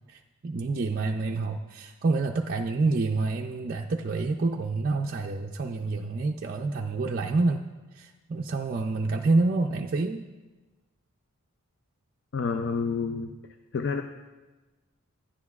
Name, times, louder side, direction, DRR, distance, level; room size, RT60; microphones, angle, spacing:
voice 1, 0.1-7.6 7.9-10.2, right 3 dB, 40° right, 0 dB, 0.4 m, -28 dB
voice 2, 12.3-13.4 13.7-14.0, left 5 dB, 55° left, 7 dB, 0.4 m, -28 dB
13.0 x 10.0 x 2.4 m, 1.2 s
head